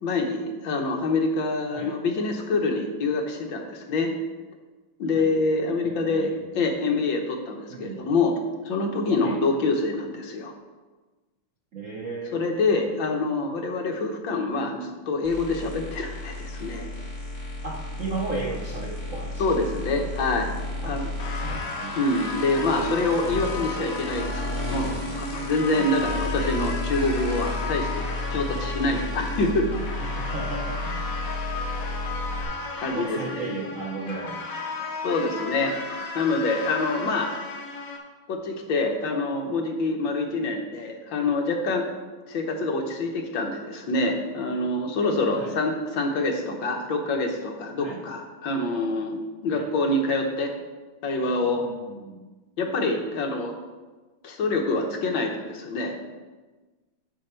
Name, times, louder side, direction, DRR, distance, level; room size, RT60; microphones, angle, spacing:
voice 1, 0.0-4.1 5.0-6.3 6.5-8.3 8.6-10.5 12.3-16.9 19.4-20.5 20.8-21.1 22.0-29.7 32.8-33.4 35.0-35.8 36.1-37.3 38.3-41.9 42.3-49.2 49.4-50.5 51.0-51.6 52.6-53.5 54.2-56.0, left 3 dB, 65° left, 3 dB, 1.6 m, -26 dB
voice 2, 5.8-6.6 7.7-8.0 9.2-9.4 11.7-12.4 17.6-20.1 20.8-21.0 21.3-22.0 25.7-25.9 29.8-31.2 32.9-34.4 34.7-34.8 40.3-40.4 45.3-45.6 47.8-48.0 49.5-49.7 51.6-52.2, right 3 dB, 60° right, -1 dB, 0.8 m, -36 dB
sound 1, 15.2-32.4, left 2 dB, 15° left, 2.0 m, -33 dB
sound 2, 21.2-38.0, left 3 dB, 50° left, 1.2 m, -35 dB
10.0 x 5.5 x 4.3 m, 1.3 s
omnidirectional pair, 2.3 m